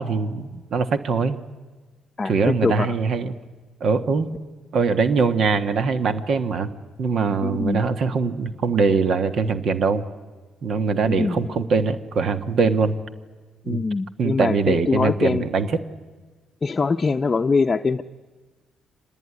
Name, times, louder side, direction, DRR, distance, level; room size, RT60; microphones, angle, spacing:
voice 1, 0.0-1.4 2.2-3.3 3.8-4.3 4.7-6.7 7.0-10.0 10.6-12.9 13.7-13.8 14.2-15.9, right 4 dB, 60° right, 9 dB, 1.4 m, -22 dB
voice 2, 2.2-2.9 7.4-7.8 11.0-11.4 13.6-15.5 16.6-18.0, left 4 dB, 30° left, 5 dB, 0.7 m, -23 dB
25.0 x 19.5 x 9.7 m, 1.3 s
cardioid pair, 90°, 0 cm